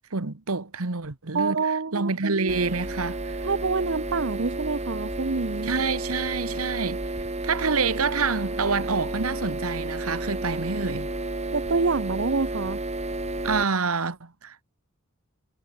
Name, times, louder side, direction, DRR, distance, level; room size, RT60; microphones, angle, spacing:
voice 1, 0.1-1.6 1.9-3.5 5.6-7.0 7.4-11.1 13.4-14.6, right 4 dB, 80° right, 1.4 m, -27 dB
voice 2, 1.3-2.5 3.4-5.7 11.5-12.8, right 4 dB, 60° right, 0.9 m, -27 dB
sound 1, 2.5-13.6, right 2 dB, 30° right, 2.9 m, -32 dB
head